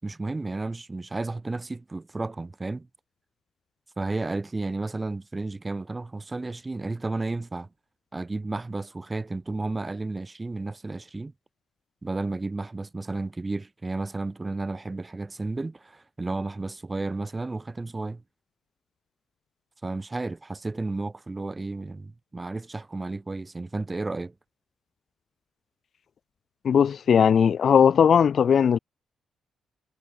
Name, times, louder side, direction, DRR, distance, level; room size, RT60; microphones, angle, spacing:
voice 1, 0.0-2.9 4.0-7.7 8.1-11.3 12.0-18.2 19.8-24.3, right 3 dB, 25° right, 6.4 m, -32 dB
voice 2, 26.6-28.8, left 7 dB, 60° left, 0.6 m, -18 dB
hypercardioid pair, 45°, 0 cm